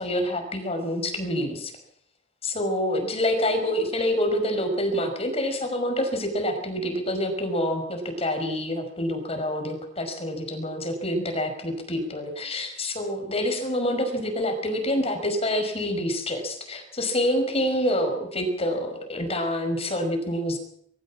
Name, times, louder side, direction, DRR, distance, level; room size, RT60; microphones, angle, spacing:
voice 1, 0.0-1.7 2.4-20.6, left 1 dB, 35° left, 5 dB, 5.6 m, -27 dB
22.5 x 15.0 x 7.6 m, 0.69 s
head